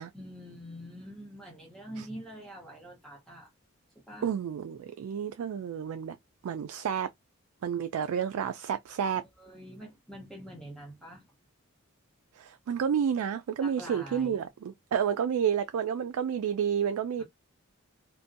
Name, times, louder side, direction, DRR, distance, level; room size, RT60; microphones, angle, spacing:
voice 1, 0.1-3.5 4.1-4.3 9.4-11.2 13.6-14.4 17.2-17.3, equal, ahead, 0.9 m, -45 dB
voice 2, 4.2-6.2 6.4-7.1 7.6-9.2 12.4-17.2, right 8 dB, 75° right, 0.3 m, -30 dB
2.5 x 2.2 x 2.5 m
head